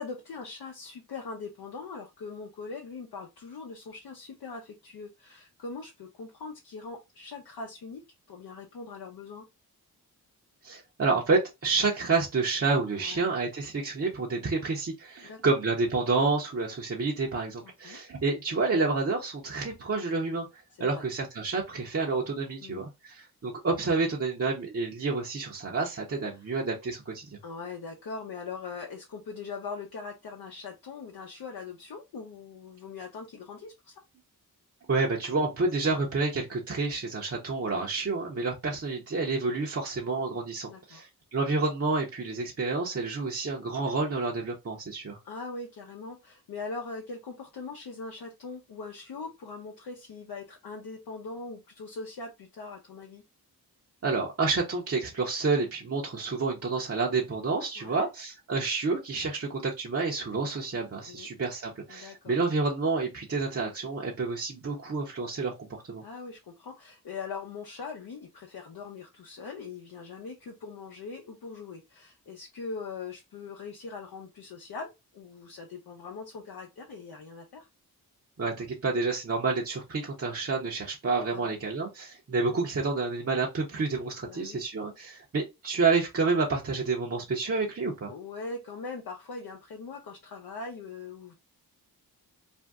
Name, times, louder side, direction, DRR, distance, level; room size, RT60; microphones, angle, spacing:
voice 1, 0.0-8.0 8.3-9.5 13.0-13.2 15.2-15.4 17.6-18.0 20.8-21.0 22.6-22.9 26.3-26.4 27.4-33.9 37.6-37.9 40.7-41.0 45.2-53.2 57.8-58.1 61.1-61.3 61.9-62.3 66.0-77.7 81.3-81.5 84.2-84.6 88.1-91.3, left 4 dB, 65° left, 0.7 m, -41 dB
voice 2, 10.6-20.5 20.8-27.4 34.9-45.2 54.0-66.0 78.4-88.1, right 3 dB, 35° right, 0.7 m, -29 dB
2.6 x 2.1 x 3.4 m
cardioid pair, 60°, 39 cm